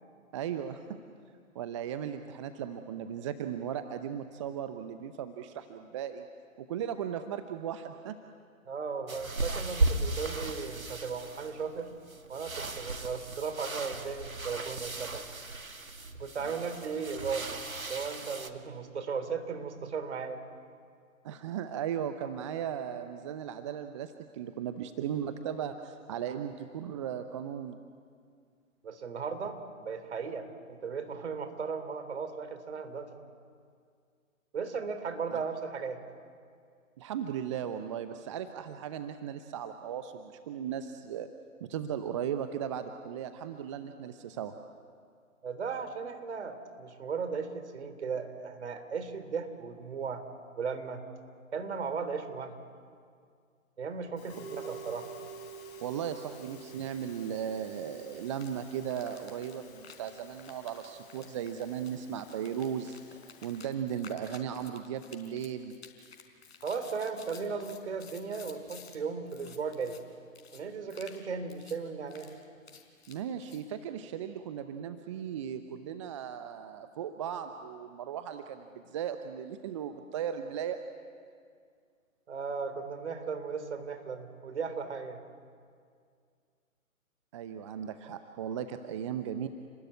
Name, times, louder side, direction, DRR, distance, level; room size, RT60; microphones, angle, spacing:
voice 1, 0.3-0.8 1.5-6.2 6.6-8.2 16.4-16.6 21.2-27.8 35.3-35.4 37.0-41.3 41.6-44.5 55.8-63.0 63.4-65.7 73.1-80.8 87.3-89.5, right 9 dB, 20° right, 9 dB, 0.8 m, -37 dB
voice 2, 8.7-11.9 12.3-15.3 16.2-17.6 17.9-20.4 28.8-33.1 34.5-36.0 45.4-50.2 50.6-51.0 51.5-52.5 53.8-55.1 66.6-70.0 70.5-72.3 82.3-85.2, right 5 dB, 55° right, 9 dB, 3.7 m, -36 dB
sound 1, 9.1-18.5, right 2 dB, 80° right, 2.3 m, -36 dB
Musical instrument, 54.2-63.6, right 3 dB, 25° left, 6.9 m, -49 dB
sound 2, 58.4-58.5 58.9-69.0 69.3-70.0 70.3-70.6 70.9-71.2 71.5-71.8 72.1-73.6, left 6 dB, 50° left, 4.7 m, -52 dB
30.0 x 21.0 x 9.6 m, 2.2 s
figure-of-eight pair, 130°, 41 cm